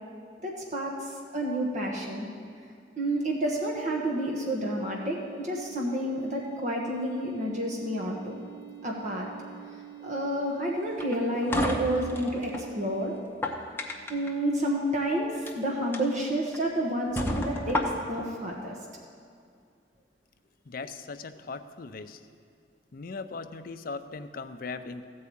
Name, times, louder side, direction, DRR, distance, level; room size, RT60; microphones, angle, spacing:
voice 1, 0.4-2.3 3.0-8.4 8.8-9.3 10.0-13.1 14.1-17.8 18.1-18.7, right 1 dB, 45° right, -2 dB, 1.2 m, -30 dB
sound 1, 3.1-13.2, right 13 dB, 70° right, 0.9 m, -46 dB
sound 2, 11.0-12.7 13.2-14.3 15.3-15.5 15.9-16.0 16.5-16.6 17.2-18.3, left 1 dB, 10° left, 0.8 m, -31 dB
voice 2, 20.7-22.2 22.9-25.0, left 4 dB, 55° left, 9 dB, 0.5 m, -39 dB
14.0 x 4.7 x 8.5 m, 2.3 s
head